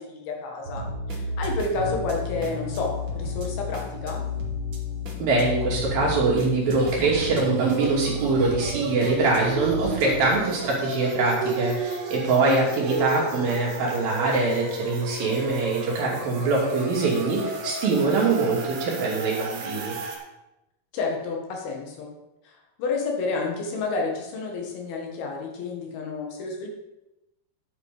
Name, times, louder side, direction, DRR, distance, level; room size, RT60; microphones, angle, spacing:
voice 1, 0.0-4.2 12.4-12.6 12.9-13.1 20.9-22.1 22.5-26.7, left 3 dB, 75° left, 1 dB, 3.6 m, -30 dB
sound 1, 0.6-10.4, left 1 dB, 50° right, 1.5 m, -32 dB
voice 2, 5.2-20.0, right 3 dB, 65° right, -3 dB, 4.2 m, -23 dB
sound 2, 6.6-20.2, right 4 dB, 80° right, 3.6 m, -33 dB
10.5 x 8.1 x 4.9 m, 0.94 s
omnidirectional pair, 4.4 m